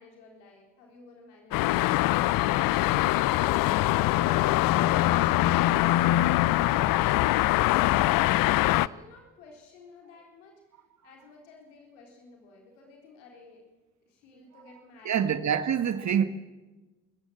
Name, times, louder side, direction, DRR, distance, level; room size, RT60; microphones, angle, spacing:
voice 1, 0.0-2.3 5.6-10.6 11.0-13.6 14.1-15.3, left 3 dB, 85° left, 4.0 m, -52 dB
sound 1, 1.5-8.9, left 16 dB, 70° left, 0.6 m, -23 dB
voice 2, 15.0-16.2, right 8 dB, 50° right, 1.6 m, -25 dB
27.5 x 14.5 x 7.6 m
hypercardioid pair, 50°, 35 cm